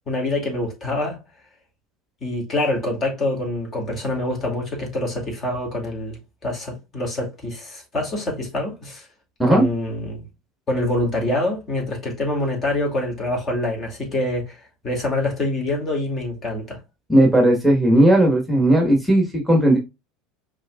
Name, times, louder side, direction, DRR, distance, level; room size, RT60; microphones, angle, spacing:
voice 1, 0.1-1.2 2.2-9.0 9.5-10.2 10.7-14.6 14.8-16.8, left 1 dB, 35° left, 2.2 m, -25 dB
voice 2, 17.1-19.8, right 1 dB, ahead, 1.3 m, -16 dB
5.4 x 3.6 x 2.3 m
figure-of-eight pair, 75°, 0 cm